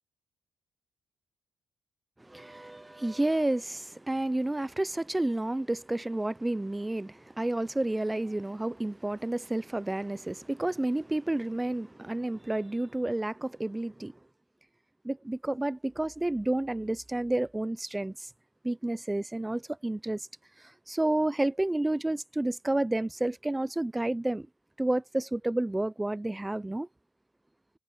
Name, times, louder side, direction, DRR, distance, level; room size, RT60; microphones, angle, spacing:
voice 1, 2.2-14.1 15.0-18.3 18.6-20.3 20.9-24.5 24.8-26.9, right 1 dB, 15° right, 0.7 m, -30 dB
supercardioid pair, 55°, 0 cm